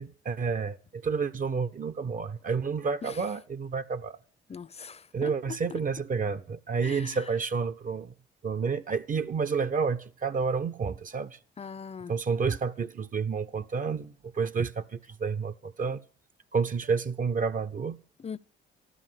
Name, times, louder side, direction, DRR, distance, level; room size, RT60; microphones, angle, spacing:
voice 1, 0.0-4.2 5.1-8.1 8.4-11.4 12.1-16.0 16.5-18.0, right 5 dB, 40° right, 0.9 m, -30 dB
voice 2, 4.5-5.8 6.8-7.2 11.6-12.1 18.2-18.4, left 6 dB, 30° left, 0.7 m, -40 dB
14.0 x 12.0 x 7.7 m
cardioid pair, 90°, 20 cm